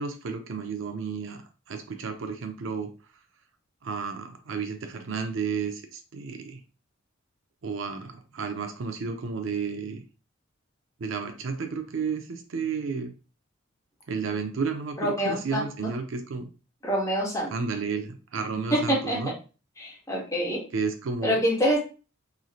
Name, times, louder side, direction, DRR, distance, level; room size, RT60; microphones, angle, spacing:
voice 1, 0.0-2.9 3.8-6.6 7.6-10.0 11.0-13.1 14.1-16.5 17.5-19.3 20.7-21.4, right 5 dB, 65° right, 6 dB, 0.5 m, -32 dB
voice 2, 15.0-15.6 16.8-17.5 18.7-19.2 19.8-20.6 21.2-21.8, equal, 15° left, -3 dB, 0.9 m, -25 dB
3.1 x 2.6 x 2.4 m, 0.33 s
head